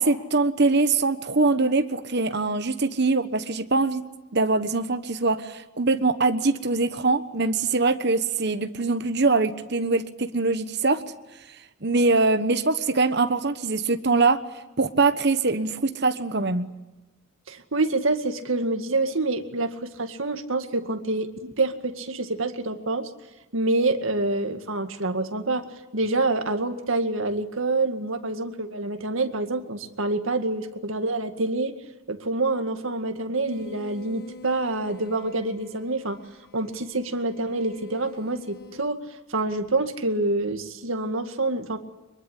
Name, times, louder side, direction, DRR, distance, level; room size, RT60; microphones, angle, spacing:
voice 1, 0.0-4.1 4.3-11.0 11.8-14.4 14.8-16.7, right 3 dB, 50° right, 9 dB, 1.2 m, -23 dB
voice 2, 17.5-23.1 23.5-31.8 32.1-36.2 36.5-41.8, right 2 dB, 70° right, 7 dB, 2.1 m, -27 dB
sound 1, 33.5-38.9, left 3 dB, 50° left, 1.8 m, -46 dB
24.0 x 22.5 x 10.0 m, 1.0 s
head